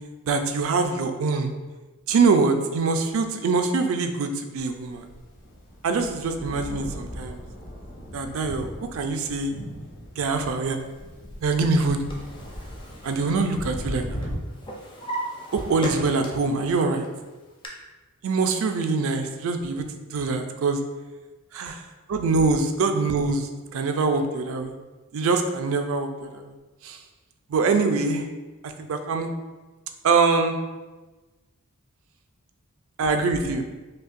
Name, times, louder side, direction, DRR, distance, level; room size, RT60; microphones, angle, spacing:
voice 1, 0.3-1.5 2.1-5.1 5.8-7.4 8.1-9.5 10.2-10.8 11.4-12.0 13.0-14.0 15.5-17.1 18.2-19.8 20.1-20.8 21.5-21.8 22.1-24.7 25.1-26.4 26.8-27.0 27.5-28.3 28.6-29.3 30.0-30.6 33.0-33.6, right 4 dB, 65° right, 6 dB, 0.4 m, -24 dB
Thunder, 4.8-14.4, equal, 45° left, 1.3 m, -38 dB
Drawer open or close, 11.5-13.9 14.2-16.6 17.0-17.7, right 1 dB, 20° left, 0.5 m, -37 dB
5.2 x 2.2 x 2.5 m, 1.2 s
head